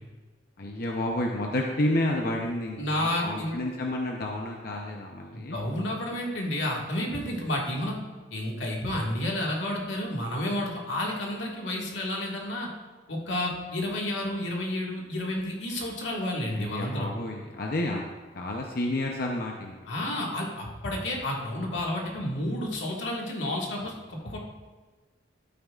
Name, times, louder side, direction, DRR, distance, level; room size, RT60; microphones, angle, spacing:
voice 1, 0.6-5.6 16.5-19.8, left 1 dB, 55° left, 0 dB, 0.7 m, -30 dB
voice 2, 2.8-3.6 5.3-8.0 8.3-12.7 13.1-17.1 19.9-24.4, left 1 dB, 90° left, -2 dB, 1.8 m, -31 dB
12.0 x 9.2 x 2.4 m, 1.4 s
head